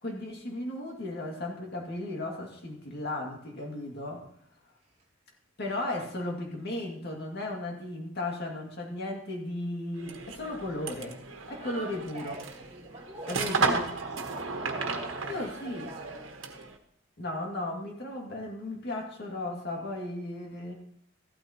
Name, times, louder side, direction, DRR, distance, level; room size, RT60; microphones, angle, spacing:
voice 1, 0.0-4.3 5.6-11.2 11.5-12.4 13.3-13.9 15.3-15.9 17.2-20.8, left 1 dB, 55° left, 0 dB, 2.1 m, -35 dB
sound 1, 10.0-16.8, right 4 dB, 80° right, 1.3 m, -34 dB
voice 2, 11.6-16.2, right 2 dB, 35° right, -1 dB, 2.5 m, -45 dB
14.5 x 12.5 x 2.9 m, 0.69 s
head